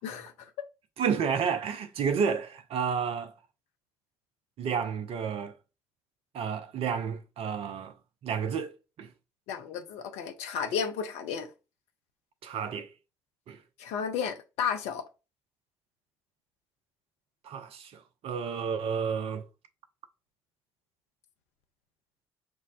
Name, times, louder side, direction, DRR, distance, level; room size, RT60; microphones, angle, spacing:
voice 1, 1.0-3.3 4.6-5.6 6.3-7.9 8.2-9.1 12.4-12.9 13.5-13.6 17.4-19.4, right 6 dB, 55° right, 0.6 m, -31 dB
voice 2, 9.5-11.5 13.8-15.0, left 7 dB, 65° left, 0.6 m, -33 dB
6.0 x 2.1 x 2.3 m
figure-of-eight pair, 45°, 12 cm